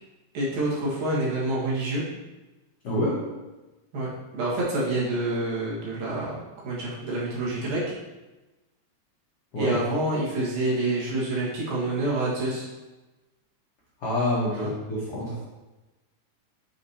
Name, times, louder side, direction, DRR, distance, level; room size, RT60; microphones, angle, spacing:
voice 1, 0.3-2.0 3.9-4.1 4.3-6.3 6.6-7.8 9.5-12.7 14.6-14.7, right 2 dB, 60° right, -7 dB, 3.1 m, -27 dB
voice 2, 2.8-3.2 9.5-9.7 14.0-15.4, left 1 dB, 75° left, -8 dB, 1.3 m, -27 dB
7.6 x 4.7 x 2.8 m, 1.1 s
omnidirectional pair, 4.8 m